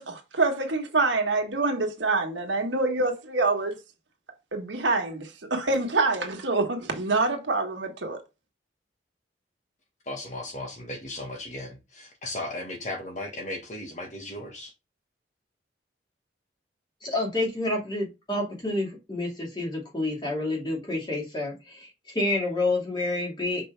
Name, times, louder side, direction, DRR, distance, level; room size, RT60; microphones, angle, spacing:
voice 1, 0.0-3.8 4.5-8.2, right 3 dB, 90° right, 1.6 m, -26 dB
voice 2, 10.0-14.7, left 1 dB, 40° left, 1.6 m, -36 dB
voice 3, 17.0-23.6, left 2 dB, 25° left, 2.4 m, -29 dB
5.4 x 5.2 x 3.4 m
head